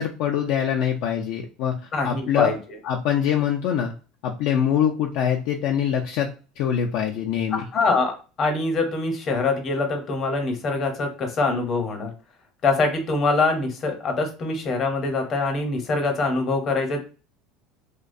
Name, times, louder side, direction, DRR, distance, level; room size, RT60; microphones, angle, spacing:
voice 1, 0.0-1.7 2.0-2.5 2.8-3.9 4.2-6.3 6.6-7.6, left 9 dB, 65° left, 1 dB, 0.3 m, -24 dB
voice 2, 1.9-2.6 7.5-12.1 12.6-17.0, left 3 dB, 40° left, 4 dB, 0.7 m, -24 dB
2.3 x 2.1 x 2.5 m, 0.35 s
supercardioid pair, 105°, 0 cm